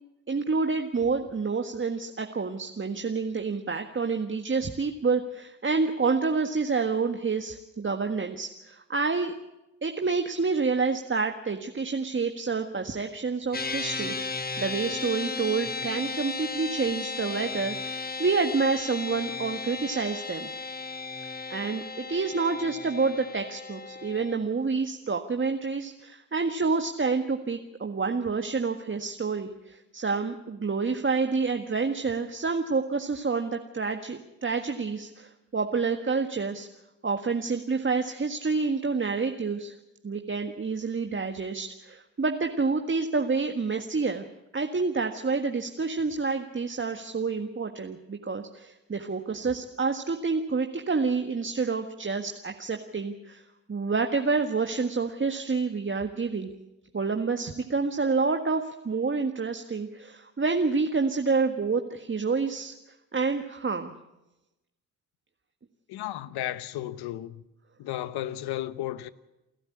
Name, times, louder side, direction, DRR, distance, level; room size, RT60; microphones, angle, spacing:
voice 1, 0.3-9.3 9.8-20.5 21.5-36.7 37.0-39.7 40.0-44.2 44.5-53.4 53.7-56.5 56.9-62.7 63.1-63.9, right 4 dB, 30° right, 1.7 m, -28 dB
sound 1, 13.5-24.4, left 4 dB, 25° left, 1.2 m, -35 dB
voice 2, 65.9-67.4 67.8-69.1, left 13 dB, 75° left, 1.1 m, -34 dB
28.5 x 12.5 x 8.7 m
supercardioid pair, 55°, 39 cm